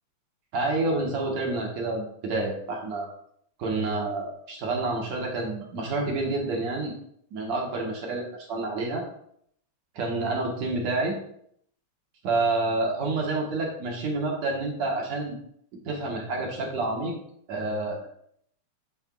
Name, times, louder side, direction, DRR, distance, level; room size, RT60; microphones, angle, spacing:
voice 1, 0.5-3.1 3.6-6.9 7.3-8.2 8.5-9.0 10.0-11.2 12.2-15.4 15.9-17.1 17.5-18.1, right 2 dB, 65° right, -1 dB, 2.6 m, -28 dB
11.5 x 4.5 x 2.4 m, 0.68 s
omnidirectional pair, 3.6 m